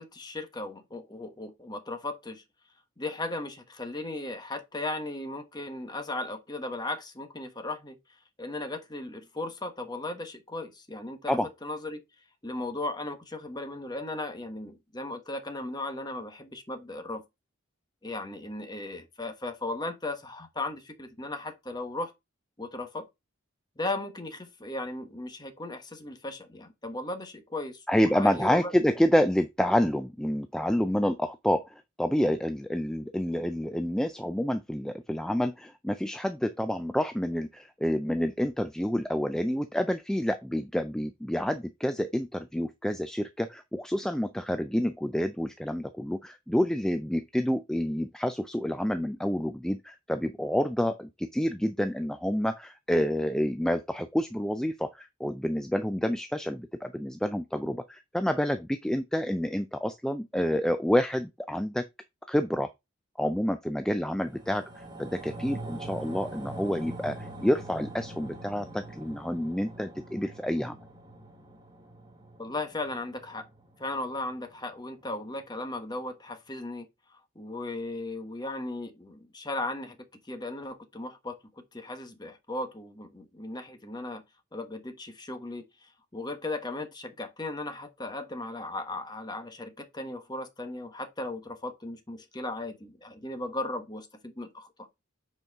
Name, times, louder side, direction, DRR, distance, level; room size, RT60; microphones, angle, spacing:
voice 1, 0.0-2.4 3.0-8.0 8.4-12.0 12.4-17.2 18.0-22.1 22.6-23.1 23.8-27.8 28.1-28.7 72.4-73.5 73.8-76.9 77.3-80.0 80.3-81.4 81.7-84.2 84.5-94.7, left 2 dB, 20° left, 1.2 m, -36 dB
voice 2, 27.9-61.8 62.3-62.7 63.2-70.8, equal, 5° left, 0.3 m, -28 dB
sound 1, 64.1-74.7 75.1-75.2, right 1 dB, 20° right, 1.2 m, -43 dB
7.9 x 4.5 x 3.5 m
head